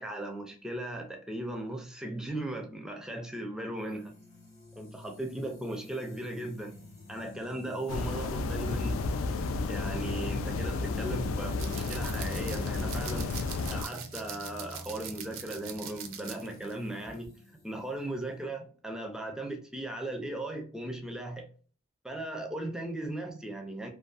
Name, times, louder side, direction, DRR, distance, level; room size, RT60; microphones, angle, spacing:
voice 1, 0.0-4.2 4.8-6.8 7.1-9.1 9.7-13.3 13.7-17.4 17.6-21.5 22.0-23.9, right 1 dB, 5° right, 0.4 m, -37 dB
sound 1, 3.8-18.5, left 1 dB, 30° left, 0.9 m, -51 dB
sound 2, 7.9-13.9, left 3 dB, 80° left, 0.3 m, -32 dB
sound 3, 11.6-16.7 17.1-17.3, right 9 dB, 75° right, 0.4 m, -43 dB
2.5 x 2.3 x 2.3 m
head